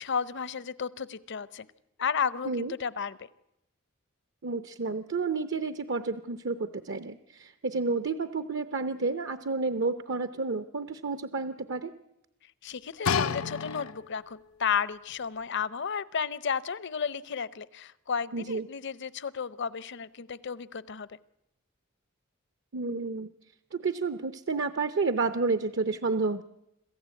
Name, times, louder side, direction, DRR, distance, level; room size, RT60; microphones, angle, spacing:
voice 1, 0.0-1.6 2.0-3.3 12.6-21.2, left 6 dB, 55° left, 18 dB, 0.7 m, -33 dB
voice 2, 4.4-11.9 18.3-18.7 22.7-23.3 23.7-26.4, right 4 dB, 60° right, 11 dB, 0.7 m, -30 dB
sound 1, 13.0-14.3 15.1-15.2, left 6 dB, 85° left, 0.7 m, -30 dB
26.5 x 15.0 x 8.3 m, 0.87 s
head